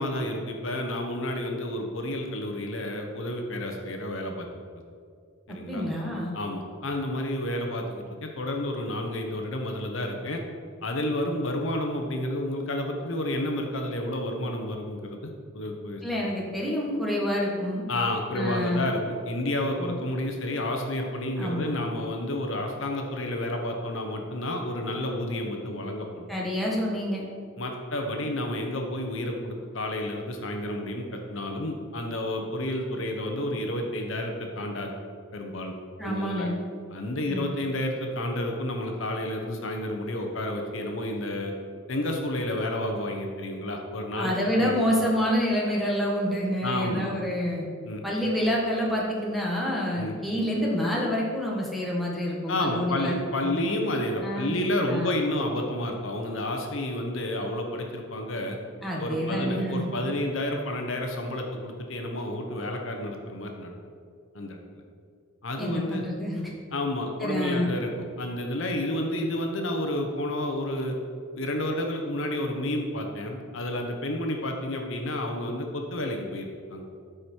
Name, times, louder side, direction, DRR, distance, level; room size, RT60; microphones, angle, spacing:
voice 1, 0.0-4.5 5.5-5.8 6.3-10.4 10.8-16.3 17.9-26.3 27.6-35.0 35.3-35.8 36.0-36.5 36.9-41.5 41.9-44.9 46.6-47.1 47.9-48.0 49.9-50.2 52.5-58.6 59.0-63.7 64.3-64.6 65.4-66.0 66.7-67.9 68.2-71.0 71.4-76.9, left 1 dB, 65° left, 2 dB, 1.0 m, -30 dB
voice 2, 5.5-6.3 16.0-17.8 18.3-18.9 19.8-19.9 21.4-21.8 26.3-27.2 36.0-36.5 37.3-37.4 44.2-47.6 48.0-53.5 54.2-54.5 54.9-55.1 58.8-59.8 65.6-66.4 67.2-67.7, equal, ahead, -4 dB, 1.6 m, -28 dB
13.0 x 5.1 x 4.5 m, 2.3 s
head